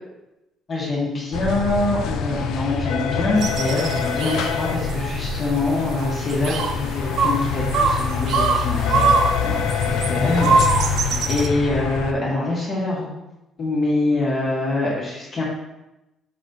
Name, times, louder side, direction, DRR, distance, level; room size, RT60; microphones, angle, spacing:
voice 1, 0.7-10.9 11.2-13.1 13.6-15.4, left 2 dB, 30° left, -5 dB, 1.4 m, -24 dB
sound 1, 1.3-12.1, left 6 dB, 65° left, 0.4 m, -25 dB
sound 2, 3.4-11.5, right 4 dB, 55° right, 0.5 m, -24 dB
6.6 x 4.1 x 3.9 m, 0.95 s
cardioid pair, 180°, 0 cm